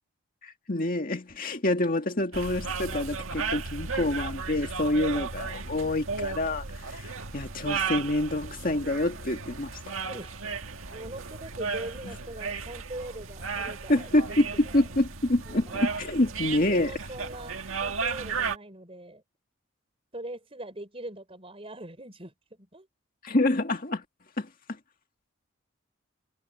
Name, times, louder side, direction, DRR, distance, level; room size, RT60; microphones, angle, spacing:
voice 1, 0.4-9.7 13.9-16.9 23.2-24.0 24.4-24.5, left 1 dB, 45° left, 2.1 m, -27 dB
sound 1, 2.3-18.6, right 5 dB, 80° right, 1.8 m, -35 dB
voice 2, 10.1-10.6 10.9-14.8 15.5-15.8 16.5-19.2 20.1-22.9, right 1 dB, 30° right, 5.1 m, -42 dB
head